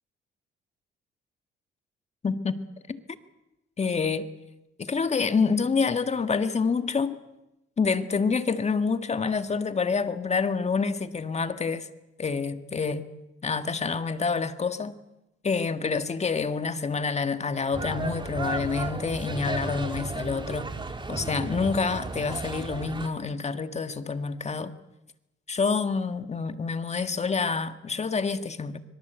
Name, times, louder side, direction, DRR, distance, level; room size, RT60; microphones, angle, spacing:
voice 1, 2.2-3.0 3.8-4.3 4.8-7.2 7.8-11.9 12.2-13.0 13.4-14.9 15.4-20.7 21.1-24.7 25.5-28.8, left 5 dB, 35° left, 1.8 m, -27 dB
sound 1, 17.7-23.1, right 3 dB, 25° right, 2.8 m, -34 dB
25.0 x 23.0 x 8.2 m
cardioid pair, 90°, 20 cm